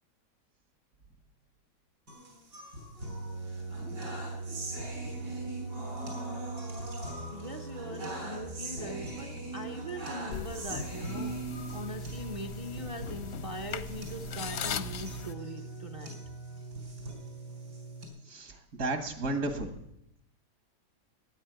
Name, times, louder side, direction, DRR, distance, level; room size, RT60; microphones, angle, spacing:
sound 1, 2.1-18.1, right 2 dB, 85° right, 4.3 m, -39 dB
voice 1, 7.3-16.2, equal, 35° right, 0.5 m, -41 dB
sound 2, 10.3-15.3, left 8 dB, 60° left, 0.7 m, -40 dB
voice 2, 18.3-19.7, right 2 dB, 60° right, 2.1 m, -33 dB
13.0 x 9.4 x 9.3 m
omnidirectional pair, 1.8 m